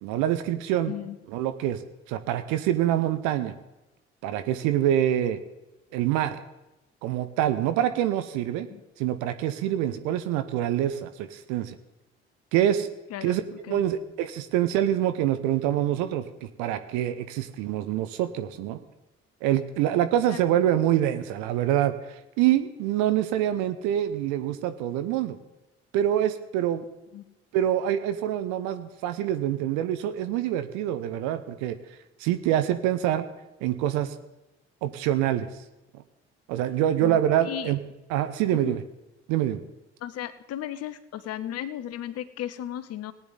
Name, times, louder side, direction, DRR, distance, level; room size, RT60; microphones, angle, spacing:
voice 1, 0.0-0.9 1.3-1.8 2.1-3.5 4.2-5.4 5.9-6.4 7.0-8.7 9.0-11.8 12.5-12.9 13.2-18.8 19.4-25.4 25.9-26.8 27.5-31.8 32.2-33.2 33.6-34.2 34.8-35.5 36.5-37.8 38.1-38.8 39.3-39.6, right 11 dB, 60° right, 11 dB, 0.9 m, -25 dB
voice 2, 40.0-43.1, left 11 dB, 50° left, 14 dB, 0.8 m, -35 dB
18.5 x 9.5 x 4.0 m, 0.99 s
figure-of-eight pair, 50°, 32 cm